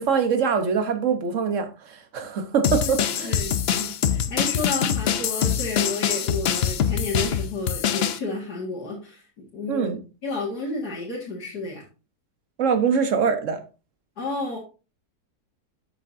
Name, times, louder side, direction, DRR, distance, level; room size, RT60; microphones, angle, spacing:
voice 1, 0.0-3.4 9.7-10.0 12.6-13.6, right 6 dB, 55° right, 1.5 m, -23 dB
sound 1, 2.6-8.2, left 8 dB, 60° left, 0.6 m, -24 dB
voice 2, 3.2-9.9 10.2-11.8 14.2-14.6, left 3 dB, 80° left, 2.5 m, -31 dB
12.0 x 6.1 x 2.7 m
omnidirectional pair, 1.7 m